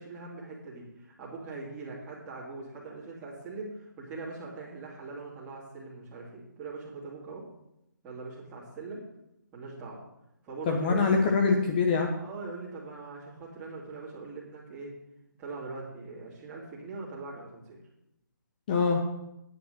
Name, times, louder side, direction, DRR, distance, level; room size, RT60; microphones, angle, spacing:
voice 1, 0.0-7.5 8.0-9.0 9.5-10.0 10.4-11.3 12.2-14.9 15.4-17.8, right 3 dB, 15° right, -6 dB, 2.6 m, -41 dB
voice 2, 10.7-12.2 18.7-19.0, left 4 dB, 25° left, 2 dB, 0.8 m, -24 dB
9.2 x 5.5 x 7.7 m, 0.85 s
hypercardioid pair, 165°, 11 cm